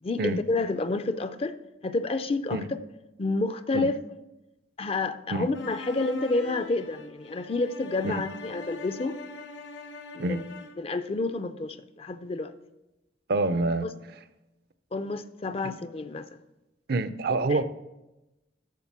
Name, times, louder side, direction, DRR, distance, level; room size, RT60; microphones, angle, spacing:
voice 1, 0.0-1.6 1.8-2.8 3.2-4.0 4.8-9.2 10.1-10.4 10.8-12.5 13.8-13.9 14.9-16.3 17.5-17.6, left 3 dB, 35° left, 0.4 m, -29 dB
sound 1, 5.5-10.9, left 3 dB, 90° left, 0.9 m, -43 dB
voice 2, 13.3-13.9 16.9-17.6, right 2 dB, 60° right, 0.5 m, -26 dB
8.3 x 7.2 x 6.0 m
head